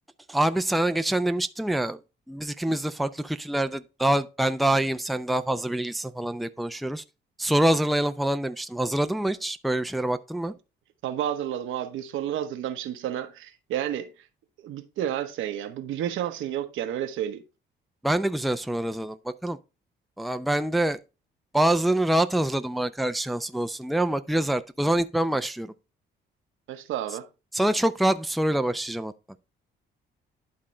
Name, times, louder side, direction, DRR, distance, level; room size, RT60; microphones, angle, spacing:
voice 1, 0.3-2.0 2.3-7.0 7.4-10.5 18.0-19.2 19.4-19.6 20.2-21.0 21.5-25.7 27.5-29.1, right 1 dB, ahead, 0.5 m, -25 dB
voice 2, 11.0-14.1 14.6-17.4 26.7-27.3, right 10 dB, 85° right, 1.0 m, -31 dB
11.0 x 3.7 x 4.2 m
cardioid pair, 90°, 20 cm